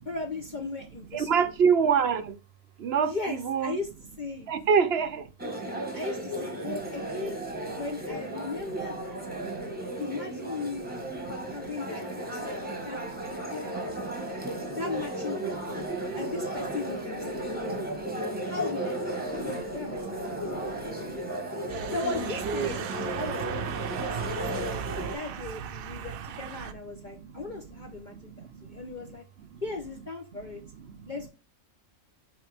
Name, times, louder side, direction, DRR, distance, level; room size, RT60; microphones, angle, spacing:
voice 1, 0.0-1.3 3.0-3.9 4.2-4.5 5.9-7.4 7.7-9.2 10.0-10.8 11.5-14.2 14.7-15.9 16.1-17.3 18.4-19.0 19.3-20.0 20.3-20.4 21.9-24.8 25.1-29.2 29.6-30.6 31.1-31.3, left 3 dB, 40° left, 0.9 m, -37 dB
voice 2, 1.1-2.4 2.8-3.8 4.5-5.3 7.2-7.3 8.6-8.7 9.0-10.0 10.7-10.8 11.2-11.7 12.3-13.8 14.1-14.8 15.4-16.4 17.2-18.1 19.2-21.2 22.3-22.7 23.8-29.2 29.5-29.6 30.3-31.1, right 6 dB, 55° right, 0.9 m, -32 dB
sound 1, 5.4-25.2, right 1 dB, 5° right, 1.2 m, -34 dB
sound 2, 21.7-26.7, right 9 dB, 80° right, 1.1 m, -37 dB
6.0 x 4.8 x 3.4 m
omnidirectional pair, 1.4 m